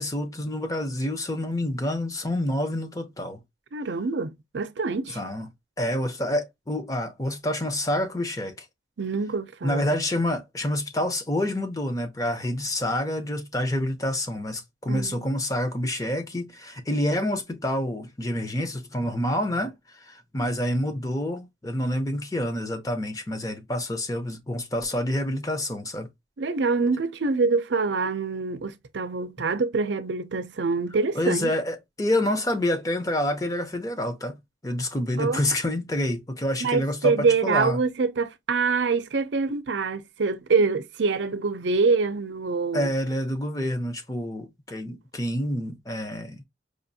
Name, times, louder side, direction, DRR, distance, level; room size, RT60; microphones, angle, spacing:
voice 1, 0.0-3.4 5.1-5.5 5.8-8.7 9.6-26.1 31.2-34.4 34.6-37.8 42.7-46.4, left 1 dB, 20° left, 0.7 m, -28 dB
voice 2, 3.7-5.2 9.0-9.9 14.9-15.3 26.4-31.5 35.2-35.4 36.6-42.9, right 4 dB, 85° right, 0.6 m, -25 dB
5.0 x 2.5 x 2.7 m
head